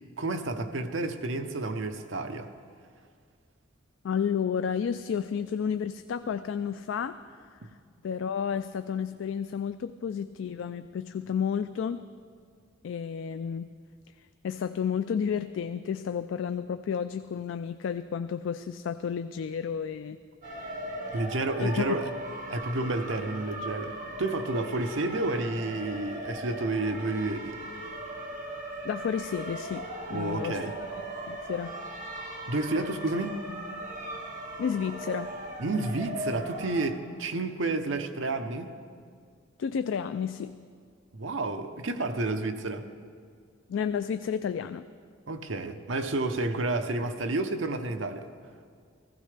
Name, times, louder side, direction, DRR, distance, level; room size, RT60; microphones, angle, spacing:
voice 1, 0.2-2.5 21.1-22.1 22.5-23.9 24.2-27.6 30.1-30.7 32.5-33.4 35.6-38.7 41.1-42.9 45.3-48.3, right 2 dB, 70° right, 6 dB, 0.8 m, -30 dB
voice 2, 4.0-7.2 7.5-7.6 8.0-12.0 12.8-13.7 14.4-20.2 21.6-22.0 28.8-29.8 30.1-30.6 30.9-31.0 31.3-31.7 34.6-35.3 39.6-40.5 43.7-44.9, left 7 dB, 70° left, 11 dB, 0.3 m, -31 dB
sound 1, 20.4-36.9, right 1 dB, 40° right, 1.7 m, -38 dB
15.5 x 15.5 x 3.3 m, 2.1 s
head